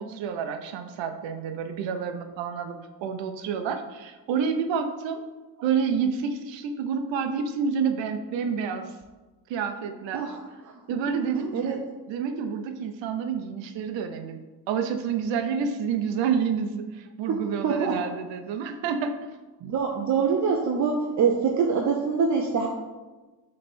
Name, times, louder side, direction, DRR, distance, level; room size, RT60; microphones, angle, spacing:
voice 1, 0.0-5.2 5.6-8.9 9.5-10.4 10.9-11.8 12.1-14.4 14.7-19.3, right 6 dB, 90° right, 7 dB, 0.8 m, -29 dB
voice 2, 10.1-10.7 11.5-11.8 17.3-17.4 17.6-18.0 19.6-22.7, right 5 dB, 40° right, 1 dB, 0.6 m, -25 dB
6.7 x 3.3 x 4.2 m, 1.2 s
cardioid pair, 145°, 44 cm